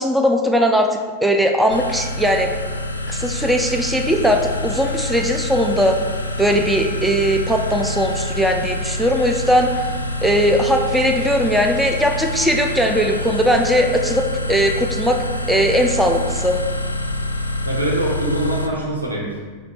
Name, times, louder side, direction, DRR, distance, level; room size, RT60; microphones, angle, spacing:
voice 1, 0.0-2.5 3.1-6.0 6.4-9.7 10.2-16.6, equal, 5° right, 3 dB, 0.3 m, -19 dB
sound 1, 1.7-18.7, left 1 dB, 80° left, 0.3 m, -26 dB
voice 2, 17.6-19.5, right 1 dB, 80° right, -3 dB, 1.0 m, -23 dB
5.0 x 2.2 x 4.3 m, 1.5 s
figure-of-eight pair, 90°, 0 cm